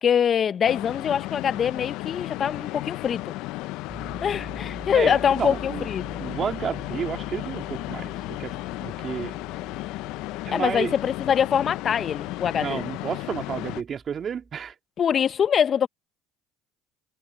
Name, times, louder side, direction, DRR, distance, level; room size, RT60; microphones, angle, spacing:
voice 1, 0.0-3.3 4.2-6.2 10.5-12.8 15.0-15.9, left 8 dB, 45° left, 1.1 m, -24 dB
sound 1, 0.6-13.8, left 19 dB, 70° left, 0.6 m, -34 dB
Piano, 3.9-14.7, right 1 dB, 10° right, 5.7 m, -45 dB
voice 2, 4.9-5.9 6.2-8.6 8.8-9.4 10.4-11.0 12.5-14.7, right 7 dB, 45° right, 2.4 m, -31 dB
hypercardioid pair, 70°, 0 cm